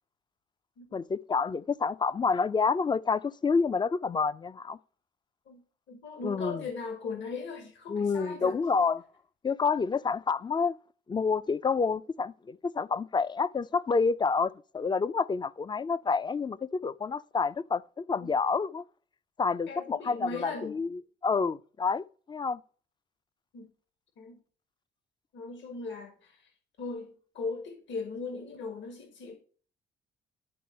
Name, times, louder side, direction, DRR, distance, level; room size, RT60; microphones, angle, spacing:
voice 1, 0.9-4.8 6.2-6.6 7.9-9.0 9.4-10.8 11.1-18.8 19.4-22.6, left 5 dB, 20° left, 0.4 m, -28 dB
voice 2, 5.9-8.6 18.2-18.3 19.7-20.8 23.5-23.7 24.2-24.4 25.3-26.5 26.8-29.3, left 4 dB, 70° left, 1.7 m, -38 dB
11.0 x 3.8 x 4.2 m
cardioid pair, 90°, 20 cm